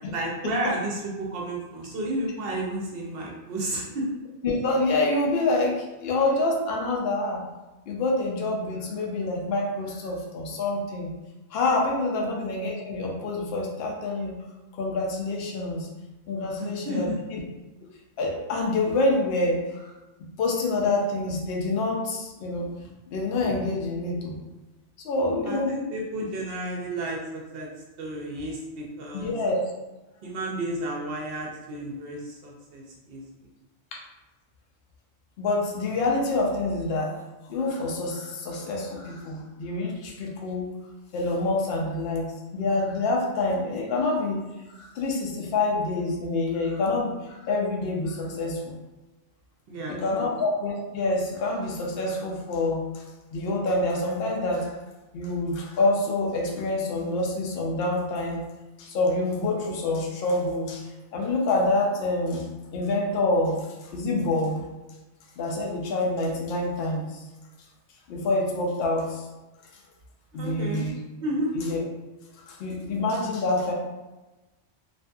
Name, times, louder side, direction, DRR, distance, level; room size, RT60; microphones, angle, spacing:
voice 1, 0.1-4.1 12.2-12.3 16.6-17.2 25.4-27.7 28.0-29.3 30.2-33.2 49.7-50.3 70.4-70.9 71.2-71.5, right 1 dB, 60° right, -2 dB, 0.7 m, -32 dB
voice 2, 4.4-7.4 7.9-11.1 11.5-14.4 14.7-15.9 16.3-17.4 17.8-17.9 18.2-19.9 20.4-22.7 23.1-24.4 25.0-25.7 29.1-29.6 33.9-34.0 35.4-37.1 37.5-40.7 41.1-44.4 44.8-48.7 49.9-53.0 53.3-54.8 55.1-58.4 58.8-62.4 62.7-64.6 65.4-67.2 68.1-69.3 70.3-70.9 71.5-71.8 72.5-73.7, left 2 dB, 60° left, 0 dB, 0.7 m, -27 dB
2.5 x 2.5 x 2.2 m, 1.1 s
omnidirectional pair, 1.3 m